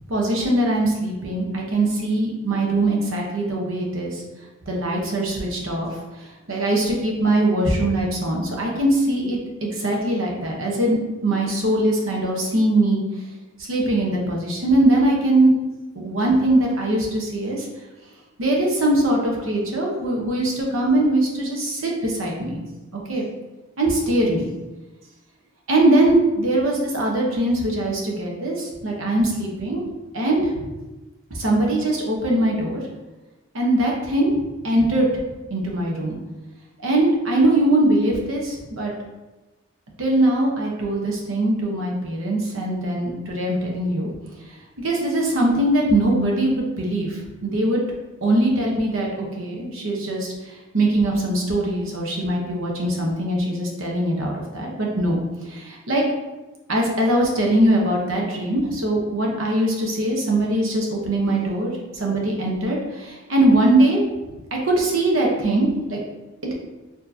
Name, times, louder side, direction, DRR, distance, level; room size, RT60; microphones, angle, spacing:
voice 1, 0.0-4.2 4.7-5.9 6.5-13.0 13.6-15.5 15.9-17.7 18.4-22.6 23.1-23.3 23.8-24.5 25.7-29.8 30.1-30.7 31.4-32.8 33.5-34.3 34.6-35.1 35.5-36.2 36.8-38.9 40.0-44.1 44.8-47.8 48.2-50.3 50.7-55.2 55.5-56.0 56.7-64.0 64.5-66.0, right 1 dB, 75° right, -1 dB, 0.9 m, -21 dB
4.5 x 2.9 x 2.7 m, 1.1 s
head